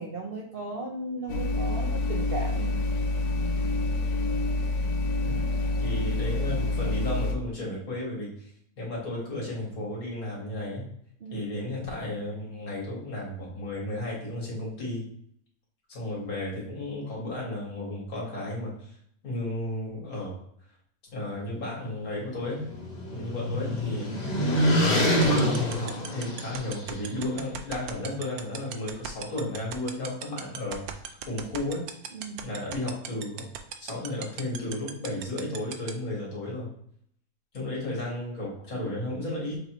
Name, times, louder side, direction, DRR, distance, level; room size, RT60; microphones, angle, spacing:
voice 1, 0.0-2.8 11.2-11.6 24.0-24.5 32.1-32.5, right 2 dB, 55° right, -1 dB, 0.6 m, -37 dB
sound 1, 1.3-7.3, left 2 dB, 90° left, 1.1 m, -27 dB
voice 2, 5.2-5.6 5.8-8.5 8.8-10.8 11.3-15.1 15.9-18.9 19.2-20.4 21.1-22.7 23.1-24.2 24.8-31.9 32.4-33.5 33.8-36.7 37.5-39.6, left 1 dB, 70° left, -4 dB, 2.1 m, -34 dB
sound 2, 22.1-26.9, equal, 35° left, 0.7 m, -26 dB
sound 3, 25.1-35.9, right 11 dB, 75° right, 1.0 m, -35 dB
6.4 x 2.8 x 3.0 m, 0.67 s
omnidirectional pair, 1.6 m